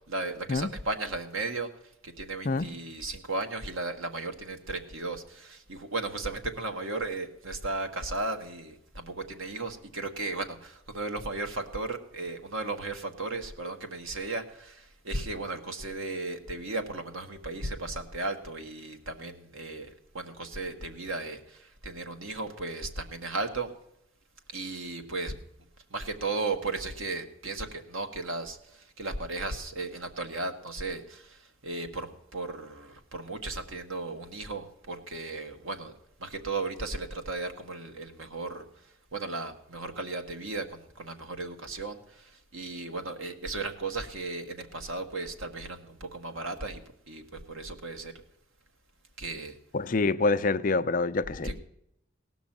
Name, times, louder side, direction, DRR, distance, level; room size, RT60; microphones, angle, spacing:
voice 1, 0.1-1.7 2.0-23.7 24.5-25.3 25.9-28.6 29.0-31.4 31.6-35.9 36.2-38.6 39.1-42.0 42.5-46.8 47.1-47.2 47.5-48.1 49.2-49.5 51.4-51.6, right 3 dB, 80° right, 1.5 m, -35 dB
voice 2, 49.7-51.5, left 3 dB, 40° left, 0.5 m, -26 dB
17.5 x 6.2 x 7.3 m
head